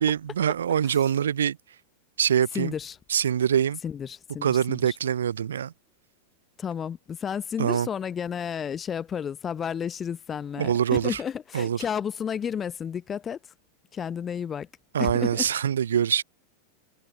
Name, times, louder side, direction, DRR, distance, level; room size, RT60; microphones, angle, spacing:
voice 1, 0.0-1.6 2.2-2.7 3.1-3.8 4.4-5.7 7.6-7.9 10.6-11.2 11.5-11.8 14.9-16.2, right 9 dB, 65° right, 0.4 m, -24 dB
voice 2, 2.5-3.0 3.8-5.0 6.6-13.4 13.9-14.7 15.0-15.5, left 8 dB, 20° left, 0.7 m, -32 dB
figure-of-eight pair, 90°, 0 cm